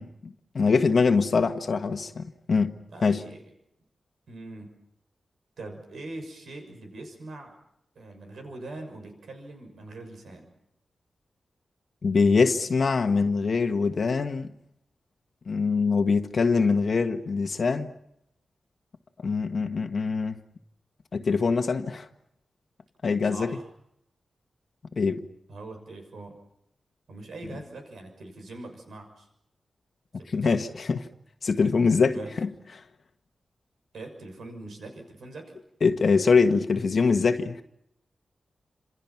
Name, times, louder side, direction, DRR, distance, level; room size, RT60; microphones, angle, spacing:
voice 1, 0.0-2.7 3.0-3.2 12.0-14.5 15.5-17.9 19.2-20.4 21.1-22.1 23.0-23.6 25.0-25.2 30.3-31.0 31.4-32.5 35.8-37.6, left 4 dB, 50° left, 1.4 m, -23 dB
voice 2, 2.9-3.4 4.3-4.7 5.6-7.5 7.9-10.5 23.2-23.7 25.5-26.4 27.1-29.3 30.2-30.7 32.1-32.3 33.9-35.6, right 2 dB, 80° right, 6.4 m, -42 dB
29.0 x 27.5 x 5.9 m
wide cardioid pair, 130°, 0 cm